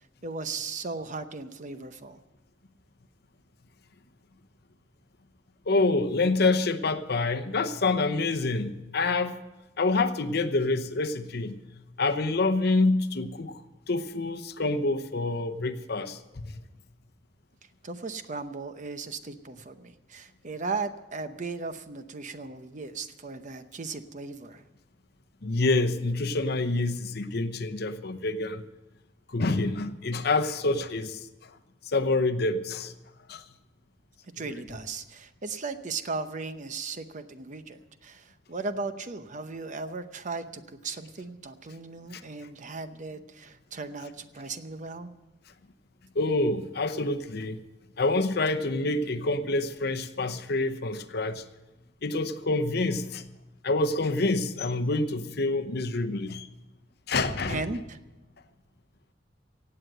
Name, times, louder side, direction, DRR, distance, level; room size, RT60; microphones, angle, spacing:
voice 1, 0.2-2.2 17.8-24.7 34.4-45.1 57.5-58.0, right 4 dB, 40° right, 10 dB, 0.8 m, -37 dB
voice 2, 5.7-9.4 9.8-11.6 12.0-13.6 13.9-16.5 25.4-28.6 29.3-31.2 31.9-32.9 33.3-33.4 34.4-34.5 42.1-42.2 46.1-47.6 48.0-51.4 52.0-53.2 53.6-56.5 57.1-57.6, left 2 dB, 60° left, 10 dB, 0.8 m, -27 dB
17.0 x 7.9 x 7.9 m, 1.1 s
head